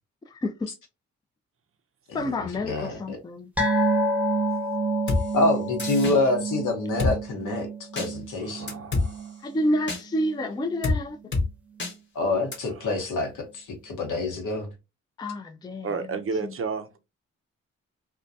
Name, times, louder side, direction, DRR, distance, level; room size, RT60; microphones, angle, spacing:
voice 1, 0.3-0.7 2.1-3.5 9.4-11.3 15.2-16.1 16.4-16.5, left 1 dB, 15° left, 0.4 m, -29 dB
voice 2, 2.6-3.2 5.3-8.8 12.1-14.7, left 2 dB, 70° left, 1.0 m, -27 dB
sound 1, 3.6-10.4 10.7-10.9 11.2-11.3, right 2 dB, 5° right, 0.9 m, -29 dB
Drum kit, 5.1-5.2 5.8-6.2 7.0-7.1 8.0-8.1 8.7-9.1 9.9-10.0 10.8-11.0 11.3-11.5 11.8-11.9 12.5-12.6, left 3 dB, 35° left, 0.9 m, -25 dB
voice 3, 8.4-9.4 12.6-13.0 15.8-17.0, right 4 dB, 45° right, 0.5 m, -33 dB
2.2 x 2.2 x 2.5 m
supercardioid pair, 45°, 32 cm